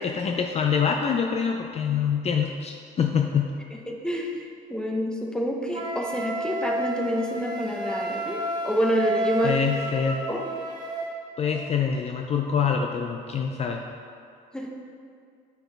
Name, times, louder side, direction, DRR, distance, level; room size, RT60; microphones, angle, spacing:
voice 1, 0.0-3.5 9.4-10.2 11.4-13.8, left 6 dB, 40° left, 3 dB, 0.4 m, -25 dB
voice 2, 3.7-9.6 10.3-10.4 14.5-14.7, equal, 5° left, 1 dB, 0.8 m, -28 dB
Wind instrument woodwind instrument, 5.7-11.2, right 2 dB, 25° right, 1.2 m, -31 dB
8.0 x 6.1 x 3.4 m, 2.3 s
cardioid pair, 110°, 17 cm